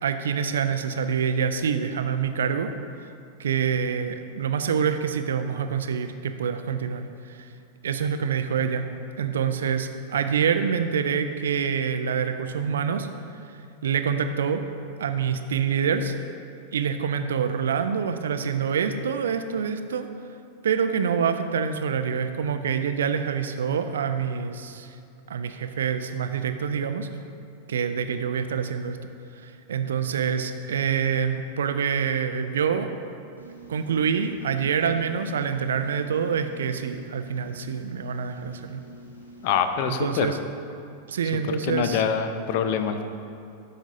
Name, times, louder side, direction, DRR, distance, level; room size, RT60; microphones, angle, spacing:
voice 1, 0.0-2.7 3.4-7.5 7.8-8.8 9.2-13.1 13.8-14.6 15.0-16.1 16.7-20.1 20.6-25.0 25.3-27.1 27.7-29.1 29.4-32.9 33.7-38.8 39.8-40.4 41.1-42.0, right 7 dB, 65° right, 9 dB, 0.4 m, -26 dB
sound 1, 33.4-39.6, right 1 dB, 85° left, 1.0 m, -46 dB
voice 2, 39.4-40.3 41.7-43.0, left 7 dB, 50° left, 8 dB, 0.4 m, -25 dB
12.0 x 5.1 x 2.6 m, 2.5 s
figure-of-eight pair, 90°, 0 cm